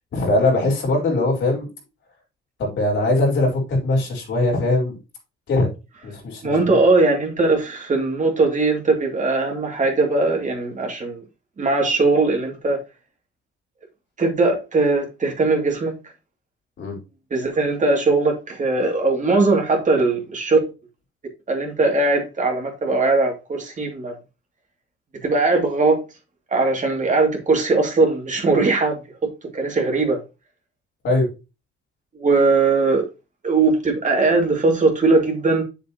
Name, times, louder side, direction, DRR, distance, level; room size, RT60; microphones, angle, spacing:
voice 1, 0.1-1.7 2.6-5.0 5.5-5.7 6.0-6.8 16.8-17.0 31.0-31.3, left 2 dB, 65° left, 4.1 m, -21 dB
voice 2, 6.4-11.2 11.6-12.8 14.2-15.9 17.3-20.6 21.5-24.2 25.2-26.0 26.5-30.2 32.1-33.1 33.4-35.6, right 3 dB, 40° right, 2.6 m, -20 dB
7.6 x 6.9 x 2.9 m
cardioid pair, 90°, 20 cm